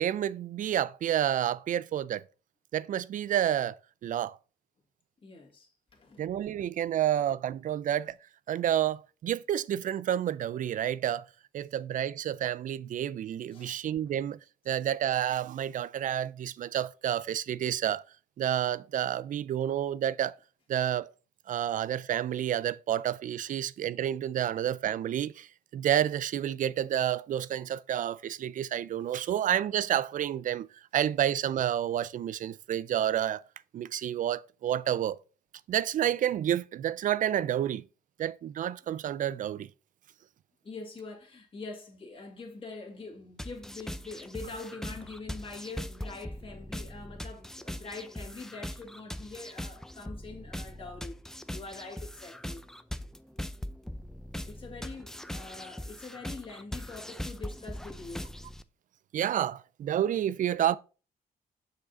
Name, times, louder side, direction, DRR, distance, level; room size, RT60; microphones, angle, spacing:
voice 1, 0.0-2.2 2.7-3.7 4.0-4.4 6.2-8.1 8.5-11.3 11.5-14.4 14.7-18.0 18.4-20.3 20.7-21.1 21.5-25.5 25.7-30.7 30.9-33.4 33.7-35.2 35.7-37.8 38.2-39.7 59.1-60.8, right 11 dB, 55° right, 0.4 m, -29 dB
voice 2, 5.2-6.3 13.5-13.8 29.2-29.3 40.6-51.2 51.5-52.6 54.5-58.3, left 3 dB, 35° left, 2.3 m, -44 dB
sound 1, 43.4-58.6, left 1 dB, 5° left, 0.5 m, -41 dB
6.5 x 5.0 x 4.0 m
cardioid pair, 95°, 16 cm